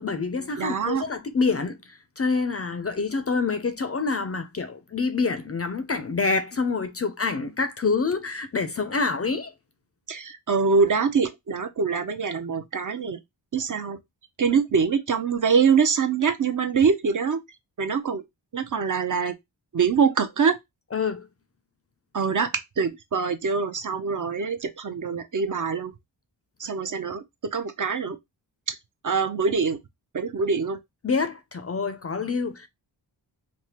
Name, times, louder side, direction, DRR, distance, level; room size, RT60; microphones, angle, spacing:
voice 1, 0.0-9.5 20.9-21.3 31.0-32.7, left 4 dB, 35° left, 0.4 m, -27 dB
voice 2, 0.6-1.0 10.1-13.2 13.5-14.0 14.4-17.4 17.8-18.2 18.5-19.3 19.7-20.6 22.1-22.5 22.8-25.9 26.6-27.2 27.5-28.2 28.7-28.8 29.0-29.8 30.1-30.8, right 5 dB, 45° right, 0.5 m, -24 dB
3.3 x 2.1 x 2.8 m
cardioid pair, 55°, 46 cm